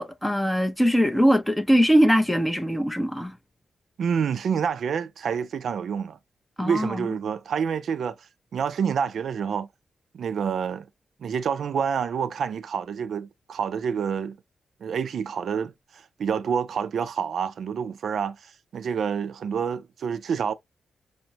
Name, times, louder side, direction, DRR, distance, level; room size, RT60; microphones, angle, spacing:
voice 1, 0.0-3.3 6.6-7.1, equal, 5° left, 0.7 m, -21 dB
voice 2, 4.0-6.2 6.6-8.2 8.5-9.7 10.1-10.9 11.2-14.4 14.8-20.5, right 7 dB, 75° right, 0.5 m, -28 dB
5.8 x 2.1 x 2.8 m
wide cardioid pair, 110°, 0 cm